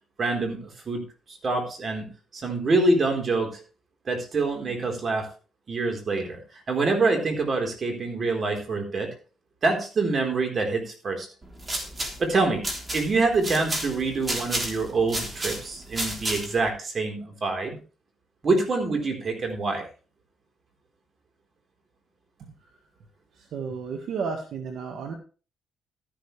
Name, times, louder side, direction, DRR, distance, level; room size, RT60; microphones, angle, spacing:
voice 1, 0.2-1.0 1.3-2.1 2.3-3.6 4.1-5.3 5.7-6.4 6.7-9.1 9.6-11.3 12.2-12.6 12.9-17.8 18.4-19.9, right 3 dB, 45° right, 3 dB, 4.2 m, -25 dB
sound 1, 11.4-16.7, right 1 dB, 25° right, 3.6 m, -32 dB
voice 2, 23.4-25.1, right 5 dB, 70° right, 4 dB, 1.7 m, -32 dB
13.0 x 11.5 x 3.4 m, 0.36 s
cardioid pair, 90°, 0 cm